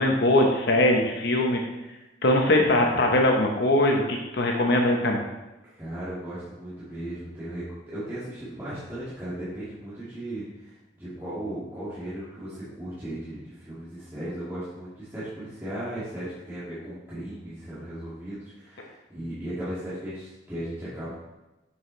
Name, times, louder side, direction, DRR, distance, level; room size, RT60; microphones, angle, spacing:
voice 1, 0.0-1.6 2.2-5.2, left 1 dB, 60° left, 1 dB, 0.9 m, -21 dB
voice 2, 2.4-3.0 5.7-21.1, right 1 dB, 10° right, -13 dB, 2.2 m, -36 dB
7.2 x 6.7 x 3.2 m, 1.0 s
head